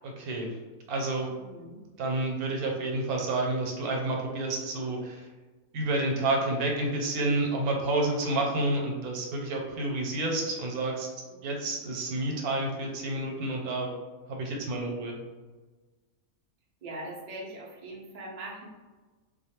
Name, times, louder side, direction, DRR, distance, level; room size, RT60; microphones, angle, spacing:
voice 1, 0.2-0.5 0.9-1.3 2.0-5.3 5.7-11.1 11.4-13.9 14.3-15.1, right 2 dB, 85° right, 1 dB, 1.1 m, -29 dB
voice 2, 1.3-1.8 16.8-18.7, right 1 dB, 60° right, -4 dB, 0.4 m, -41 dB
2.5 x 2.2 x 2.8 m, 1.3 s
omnidirectional pair, 1.5 m